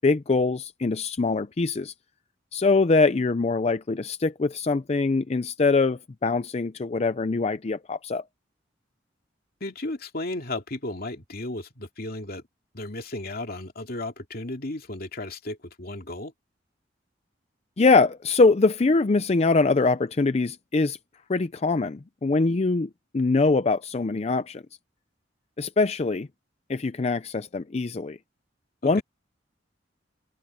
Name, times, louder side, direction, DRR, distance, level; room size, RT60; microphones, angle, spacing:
voice 1, 0.0-1.9 2.5-8.2 17.8-21.0 21.3-24.6 25.6-26.3 26.7-28.2 28.8-29.0, left 3 dB, 35° left, 0.5 m, -23 dB
voice 2, 9.6-12.4 12.7-16.3 28.8-29.0, left 2 dB, 55° left, 2.6 m, -34 dB
open air
head